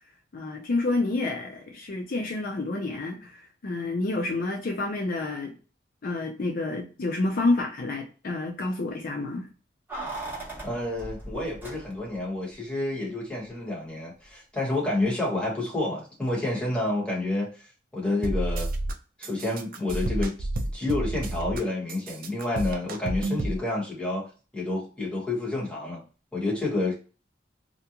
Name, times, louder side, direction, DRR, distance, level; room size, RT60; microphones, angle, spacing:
voice 1, 0.3-5.5 6.0-9.5, left 2 dB, 50° left, 0.5 m, -29 dB
Keys jangling, 9.9-12.3 12.5-12.6, right 2 dB, 10° right, 0.9 m, -38 dB
voice 2, 10.6-17.5 17.9-18.7 19.2-24.3 24.5-26.0 26.3-26.9, left 2 dB, 5° left, 1.1 m, -29 dB
sound 1, 18.2-18.9 19.2-21.6 21.9-23.6, right 1 dB, 50° right, 0.4 m, -30 dB
2.4 x 2.2 x 2.8 m
head